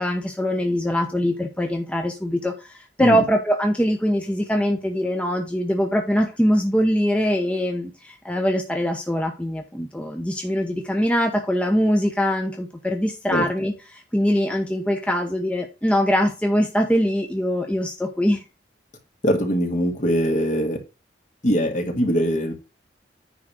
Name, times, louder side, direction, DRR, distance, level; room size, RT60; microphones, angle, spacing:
voice 1, 0.0-18.4, equal, 5° left, 3 dB, 0.8 m, -23 dB
voice 2, 19.2-20.8 21.4-22.5, equal, 45° left, 4 dB, 1.9 m, -22 dB
9.8 x 3.9 x 6.2 m, 0.30 s
head